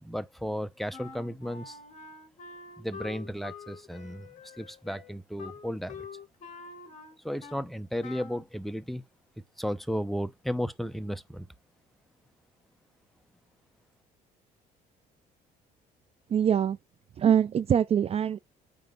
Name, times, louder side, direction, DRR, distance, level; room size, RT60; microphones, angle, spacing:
voice 1, 0.0-1.8 2.8-4.3 4.6-6.1 7.2-9.0 9.6-11.5, equal, ahead, 0.8 m, -34 dB
Wind instrument woodwind instrument, 0.9-7.7 8.0-8.5, left 5 dB, 45° left, 2.6 m, -46 dB
voice 2, 16.3-16.8 17.2-18.4, right 8 dB, 35° right, 0.4 m, -24 dB
9.2 x 3.5 x 5.3 m
cardioid pair, 110°, 17 cm